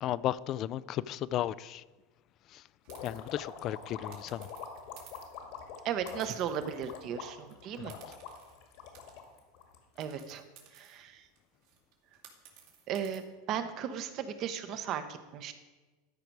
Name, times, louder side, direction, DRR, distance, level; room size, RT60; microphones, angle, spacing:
voice 1, 0.0-1.8 2.5-2.6 3.0-4.5 7.8-8.2, left 12 dB, 45° left, 19 dB, 0.3 m, -35 dB
sound 1, 2.8-3.2 4.1-5.4 6.1-7.1 7.4-7.5 7.9-9.4 10.0-13.2, right 8 dB, 70° right, 2.3 m, -57 dB
sound 2, 2.9-10.2, left 6 dB, 65° left, 1.7 m, -45 dB
voice 2, 5.8-7.9 10.0-10.4 10.7-11.2 12.9-13.2 13.5-15.5, right 8 dB, 50° right, 10 dB, 0.9 m, -36 dB
13.0 x 5.1 x 4.7 m, 1.2 s
supercardioid pair, 110°, 0 cm